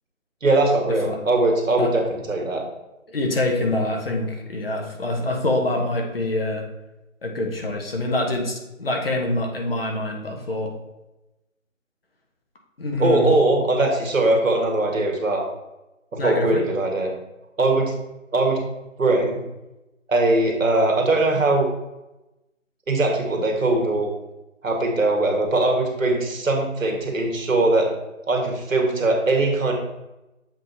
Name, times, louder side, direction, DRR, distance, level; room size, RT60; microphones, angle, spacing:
voice 1, 0.4-2.6 13.0-15.4 16.1-17.1 17.6-17.9 18.3-18.6 19.0-19.4 20.1-21.7 22.9-24.1 24.6-27.9 28.3-29.7, right 2 dB, 75° right, 1 dB, 1.9 m, -21 dB
voice 2, 3.1-6.7 7.2-10.7 12.8-13.3 16.2-16.6, left 2 dB, 45° left, 1 dB, 1.3 m, -25 dB
7.4 x 3.7 x 4.1 m, 0.97 s
figure-of-eight pair, 170°, 39 cm